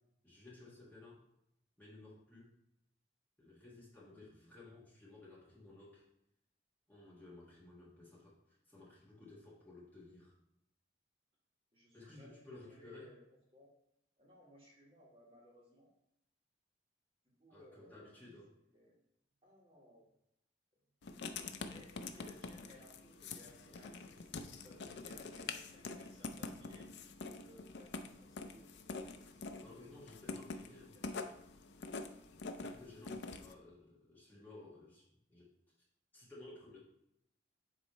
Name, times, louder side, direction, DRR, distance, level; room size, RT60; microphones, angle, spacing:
voice 1, 0.2-1.2 1.8-2.5 3.4-6.0 6.9-10.3 11.9-13.1 17.5-18.5 29.6-31.0 32.6-35.0 35.3-35.5 36.1-36.8, left 2 dB, 10° left, -7 dB, 1.4 m, -56 dB
voice 2, 11.7-13.2 13.5-13.7 14.2-15.9 17.4-18.3 18.7-19.0 19.4-20.1 21.0-26.9 27.4-28.8 29.3-29.9 30.4-31.3 33.3-33.4, left 1 dB, 30° right, -4 dB, 1.6 m, -61 dB
Writing, 21.0-33.5, left 4 dB, 70° left, 0.5 m, -46 dB
7.9 x 3.1 x 4.1 m, 0.79 s
head